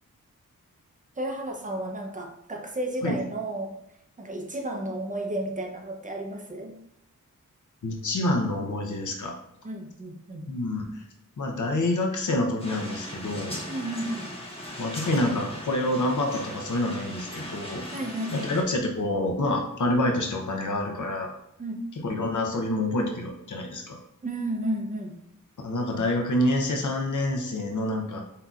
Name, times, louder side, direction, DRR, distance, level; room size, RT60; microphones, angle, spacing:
voice 1, 1.2-3.8 4.2-6.8 9.6-10.4 13.7-14.3 17.9-18.6 21.6-21.8 24.2-25.1, right 1 dB, 25° right, 2 dB, 0.7 m, -32 dB
voice 2, 7.8-9.3 10.5-11.0 11.4-13.6 14.8-17.8 18.3-21.3 22.0-24.0 25.6-28.2, left 1 dB, 65° left, 2 dB, 0.7 m, -27 dB
sound 1, 12.6-18.6, equal, 15° left, 1.1 m, -38 dB
7.4 x 2.8 x 2.4 m, 0.78 s
wide cardioid pair, 115°, 32 cm